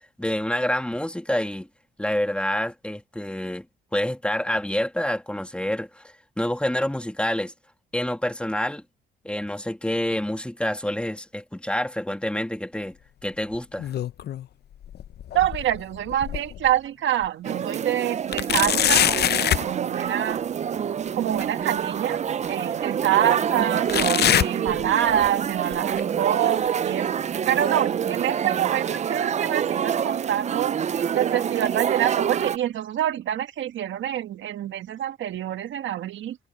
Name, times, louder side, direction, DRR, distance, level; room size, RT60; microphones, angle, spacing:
voice 1, 0.2-1.7 2.0-3.7 3.9-7.5 7.9-8.8 9.2-12.9 13.2-13.9, left 1 dB, 5° left, 2.5 m, -27 dB
sound 1, 13.5-14.5 14.8-16.7 17.2-17.3 18.3-19.7 21.4-21.5 22.4-22.5 23.9-25.3 25.6-26.0 26.7-26.8 27.6-27.7, left 11 dB, 55° left, 0.6 m, -24 dB
voice 2, 15.3-19.1 19.4-20.4 21.1-22.2 22.5-27.2 27.5-30.8 31.1-36.4, right 11 dB, 75° right, 1.4 m, -26 dB
sound 2, 17.4-32.6, right 8 dB, 35° right, 0.4 m, -26 dB
cardioid pair, 90°, 20 cm